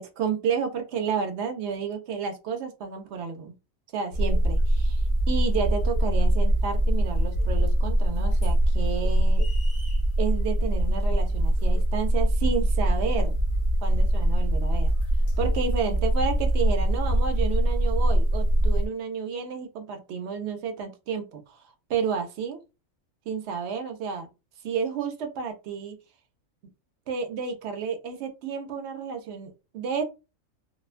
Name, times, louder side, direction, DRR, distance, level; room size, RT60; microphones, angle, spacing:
voice 1, 0.0-3.5 3.9-9.5 10.2-13.4 13.8-14.9 15.4-21.6 21.9-22.6 23.3-24.3 24.6-26.0 27.1-30.0, right 6 dB, 65° right, 6 dB, 0.7 m, -31 dB
sound 1, 4.1-18.9, right 1 dB, 60° left, 0.9 m, -23 dB
sound 2, 9.3-10.1, left 1 dB, 20° right, 0.7 m, -45 dB
2.4 x 2.1 x 2.4 m, 0.28 s
omnidirectional pair, 1.4 m